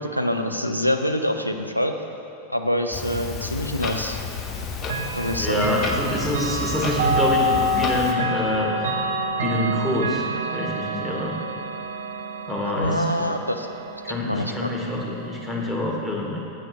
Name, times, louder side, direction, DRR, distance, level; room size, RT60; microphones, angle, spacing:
voice 1, 0.0-1.9 2.5-4.2 5.1-5.7 12.8-13.7 14.3-14.7, equal, 90° left, 4 dB, 0.4 m, -25 dB
Clock, 2.9-8.1, left 5 dB, 30° left, 0.7 m, -31 dB
Chime / Clock, 4.8-15.7, right 1 dB, 60° right, 0.5 m, -28 dB
voice 2, 5.4-8.7 9.4-11.4 12.5-13.0 14.0-16.4, left 1 dB, 5° left, -3 dB, 1.5 m, -26 dB
7.9 x 4.8 x 5.9 m, 2.6 s
figure-of-eight pair, 90°, 0 cm